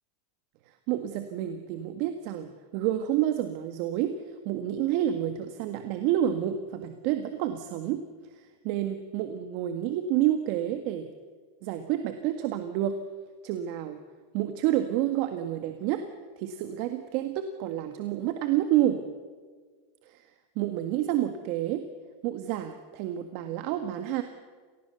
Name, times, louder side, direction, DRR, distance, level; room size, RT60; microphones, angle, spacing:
voice 1, 0.9-4.1 4.4-8.0 8.3-11.1 11.6-13.0 13.4-14.0 14.3-16.0 16.4-19.0 20.0-20.3 20.5-21.8 22.2-24.2, right 12 dB, 55° right, 7 dB, 1.7 m, -29 dB
26.5 x 19.5 x 7.0 m, 1.5 s
supercardioid pair, 120°, 0 cm